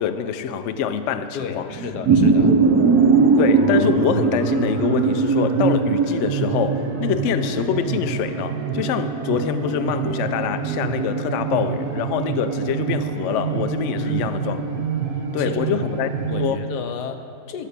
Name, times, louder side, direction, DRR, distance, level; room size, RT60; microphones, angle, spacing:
voice 1, 0.0-1.6 3.4-14.6 15.3-16.6, left 8 dB, 70° left, 0.7 m, -25 dB
voice 2, 1.3-2.6 14.0-14.3 15.4-15.6 16.3-17.7, left 7 dB, 85° left, 1.3 m, -32 dB
sound 1, 1.7-16.5, right 4 dB, 75° right, 1.5 m, -22 dB
13.0 x 5.9 x 6.7 m
omnidirectional pair, 1.7 m